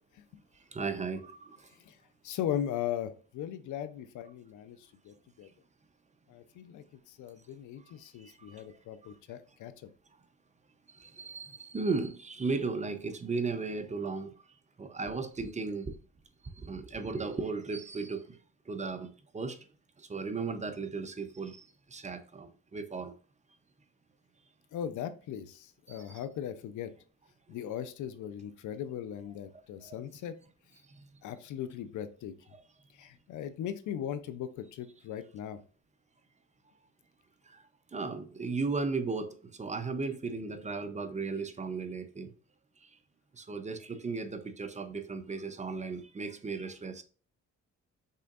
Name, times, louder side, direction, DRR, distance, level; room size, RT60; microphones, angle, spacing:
voice 1, 0.7-1.6 11.0-14.3 14.8-15.9 16.6-18.2 18.7-19.6 20.1-23.1 25.9-26.0 29.8-30.0 37.9-42.3 43.4-47.0, right 4 dB, 25° right, 0.6 m, -35 dB
voice 2, 2.2-4.8 5.0-5.5 6.3-9.7 24.7-26.9 27.5-30.4 31.2-32.3 33.0-35.6, left 10 dB, 75° left, 0.6 m, -38 dB
5.6 x 3.7 x 2.4 m
cardioid pair, 90°, 30 cm